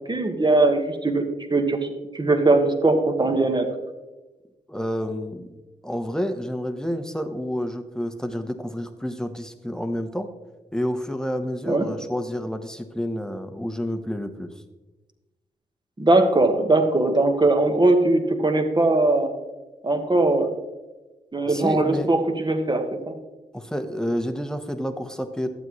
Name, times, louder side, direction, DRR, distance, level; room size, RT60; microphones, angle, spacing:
voice 1, 0.1-1.2 1.5-3.7 11.7-11.9 16.0-19.3 19.8-20.5 21.3-23.1, right 2 dB, 25° right, 5 dB, 1.4 m, -20 dB
voice 2, 4.7-5.5 5.8-10.3 10.7-14.5 21.4-22.1 23.5-25.5, equal, 5° left, 7 dB, 1.1 m, -29 dB
12.0 x 8.0 x 3.1 m, 1.1 s
supercardioid pair, 40°, 17 cm